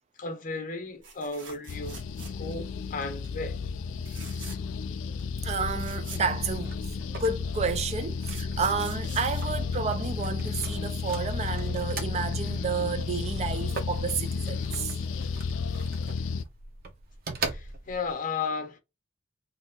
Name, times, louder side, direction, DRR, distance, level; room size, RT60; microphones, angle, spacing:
voice 1, 0.2-3.6 17.4-18.8, left 4 dB, 45° left, 0.7 m, -35 dB
sound 1, 1.0-2.7 3.0-3.3 4.0-4.8 5.2-5.3 5.5-7.0 7.8-10.3 12.2-12.4 12.7-12.8, right 4 dB, 75° right, 1.2 m, -47 dB
sound 2, 1.7-16.4, left 5 dB, 80° left, 0.3 m, -32 dB
voice 2, 5.4-6.8 7.1-15.0, right 5 dB, 35° right, 0.3 m, -31 dB
sound 3, 5.5-18.1, right 3 dB, 50° right, 0.7 m, -42 dB
2.6 x 2.4 x 4.1 m
head